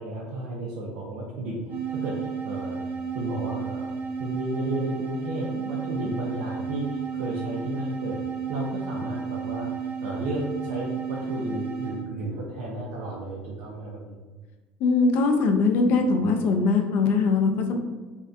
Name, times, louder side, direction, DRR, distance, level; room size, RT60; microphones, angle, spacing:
voice 1, 0.0-8.2 8.5-9.7 10.0-14.2, right 1 dB, 85° right, -4 dB, 0.5 m, -33 dB
sound 1, 1.7-12.1, right 6 dB, 30° right, 0.4 m, -32 dB
voice 2, 14.8-17.8, left 4 dB, 45° left, 4 dB, 0.3 m, -21 dB
2.6 x 2.1 x 2.3 m, 1.3 s
cardioid pair, 165°, 4 cm